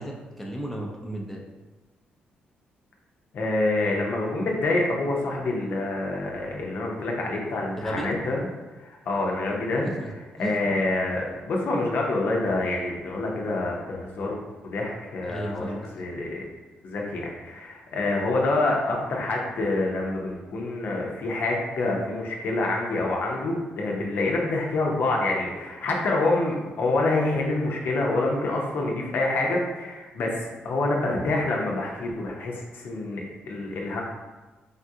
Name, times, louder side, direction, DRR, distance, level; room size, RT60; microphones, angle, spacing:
voice 1, 0.0-1.4 7.8-8.1 9.8-10.1 10.4-10.7 15.3-15.9, right 1 dB, 5° left, -2 dB, 0.6 m, -34 dB
voice 2, 3.3-8.5 8.8-9.9 10.4-14.4 14.6-16.4 16.8-34.0, left 2 dB, 65° left, -1 dB, 0.6 m, -27 dB
3.6 x 2.3 x 2.7 m, 1.2 s
cardioid pair, 85°, 4 cm